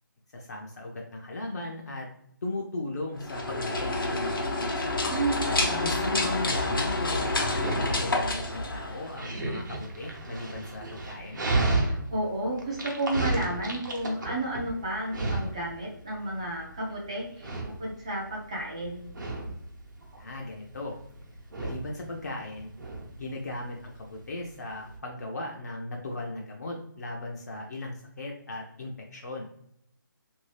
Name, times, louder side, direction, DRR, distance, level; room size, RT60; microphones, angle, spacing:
voice 1, 0.3-2.1 2.4-4.7 5.8-11.4 20.2-21.0 21.6-22.7 23.2-29.5, left 2 dB, 50° left, -1 dB, 0.5 m, -37 dB
sound 1, 3.2-9.3, left 2 dB, 85° left, 0.9 m, -28 dB
voice 2, 5.1-6.3 11.8-19.1, right 1 dB, 20° right, -3 dB, 0.4 m, -32 dB
Dog, 5.8-25.0, right 2 dB, 60° right, 0.9 m, -34 dB
2.8 x 2.7 x 3.2 m, 0.71 s
hypercardioid pair, 170°, 11 cm